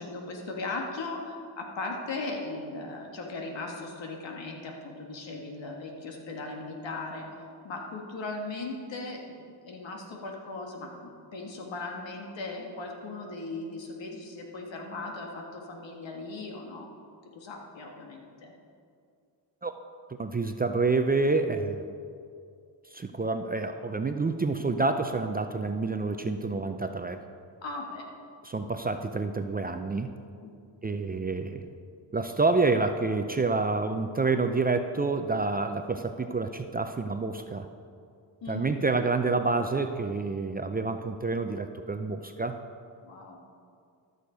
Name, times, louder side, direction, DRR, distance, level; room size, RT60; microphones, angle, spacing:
voice 1, 0.0-7.3 7.6-16.9 17.4-18.5 27.6-28.1 30.4-30.7 38.4-38.7 43.0-43.4, left 3 dB, 75° left, 1 dB, 1.8 m, -38 dB
voice 2, 20.2-21.8 22.9-27.2 28.4-30.1 30.8-31.7 32.1-37.7 38.5-42.6, right 3 dB, 20° right, 7 dB, 0.5 m, -28 dB
13.0 x 6.6 x 5.1 m, 2.3 s
cardioid pair, 85°, 45 cm